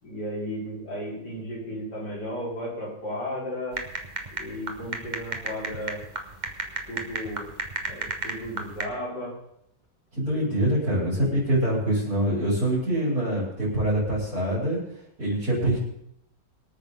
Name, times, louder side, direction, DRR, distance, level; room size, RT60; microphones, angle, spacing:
voice 1, 0.0-3.8 4.3-6.0 6.9-7.5 7.8-9.3 11.1-11.5, equal, 70° left, -5 dB, 6.0 m, -34 dB
sound 1, 3.7-8.8, right 3 dB, 25° right, 1.4 m, -34 dB
voice 2, 10.2-14.8 15.2-15.8, right 1 dB, 55° right, -9 dB, 7.0 m, -24 dB
25.0 x 9.0 x 4.1 m, 0.74 s
omnidirectional pair, 1.9 m